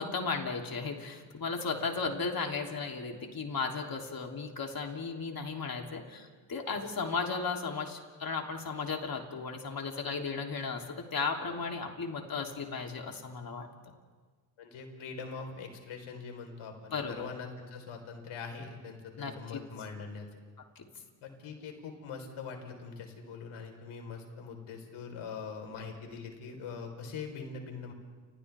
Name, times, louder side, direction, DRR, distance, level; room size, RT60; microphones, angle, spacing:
voice 1, 0.0-13.7 16.9-17.3 19.2-19.6 20.8-20.9, left 4 dB, 45° left, 2 dB, 3.3 m, -35 dB
voice 2, 14.6-20.3 21.2-27.9, left 5 dB, 75° left, 4 dB, 4.4 m, -43 dB
30.0 x 26.5 x 3.6 m, 1.4 s
supercardioid pair, 65°, 49 cm